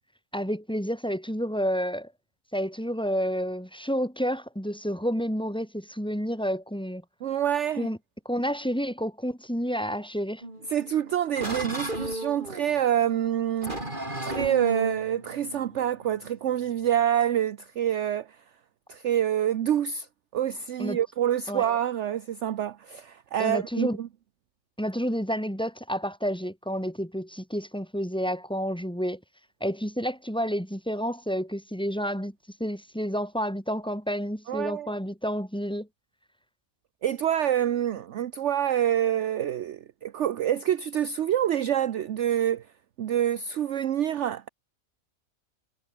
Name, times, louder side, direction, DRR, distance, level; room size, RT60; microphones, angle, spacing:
voice 1, 0.3-2.1 2.5-7.0 7.8-8.0 8.3-10.4 20.8-21.0 21.5-21.6 23.4-24.0 24.8-29.2 29.6-32.3 32.6-35.9, equal, 5° left, 5.1 m, -30 dB
voice 2, 7.2-7.9 10.7-13.9 14.2-18.4 18.9-20.1 20.3-24.1 34.5-35.0 37.0-42.7 43.0-44.5, right 10 dB, 60° right, 1.0 m, -27 dB
sound 1, 10.4-17.0, right 1 dB, 35° right, 6.8 m, -35 dB
omnidirectional pair, 1.5 m